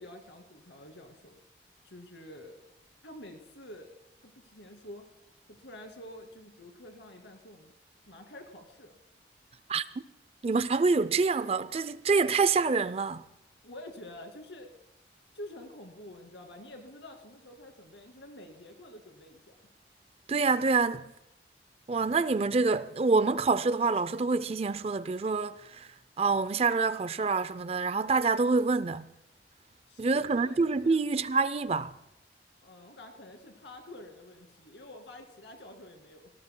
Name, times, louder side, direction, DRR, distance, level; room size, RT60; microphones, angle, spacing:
voice 1, 0.0-1.4 1.8-2.7 3.0-5.1 5.5-7.7 8.1-9.0 13.6-14.7 15.3-19.7 29.9-30.6 30.8-31.0 32.6-36.3, left 1 dB, 85° left, 2.4 m, -48 dB
voice 2, 10.4-13.2 20.3-21.1 21.9-25.9 26.2-29.1 30.0-31.9, right 4 dB, 35° right, 0.4 m, -26 dB
26.5 x 18.5 x 2.2 m
head